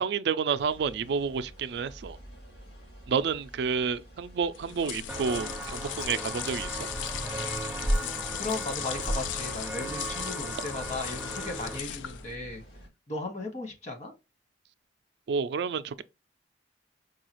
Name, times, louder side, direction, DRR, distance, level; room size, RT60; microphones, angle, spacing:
voice 1, 0.0-2.2 3.1-6.8 15.3-16.0, right 6 dB, 65° right, 0.3 m, -30 dB
sound 1, 0.6-12.9, equal, 65° left, 2.6 m, -51 dB
sound 2, 4.5-12.4, left 11 dB, 90° left, 0.4 m, -37 dB
Walk footsteps, 5.1-11.8, right 1 dB, 5° right, 0.5 m, -34 dB
voice 2, 8.4-12.6 13.1-14.1, left 2 dB, 40° left, 1.3 m, -36 dB
4.8 x 2.3 x 2.9 m
head